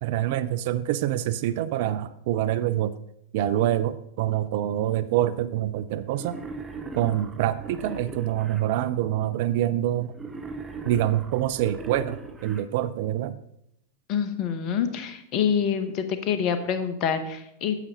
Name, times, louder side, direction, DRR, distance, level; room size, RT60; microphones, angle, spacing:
voice 1, 0.0-3.0 3.3-6.4 6.9-10.1 10.8-13.4, right 12 dB, 50° right, 14 dB, 0.4 m, -26 dB
Wild animals, 6.1-8.6 10.1-12.6, right 3 dB, 15° right, 1.0 m, -39 dB
voice 2, 14.1-17.8, left 7 dB, 40° left, 9 dB, 1.0 m, -26 dB
9.2 x 8.2 x 4.0 m, 0.76 s
figure-of-eight pair, 90°, 0 cm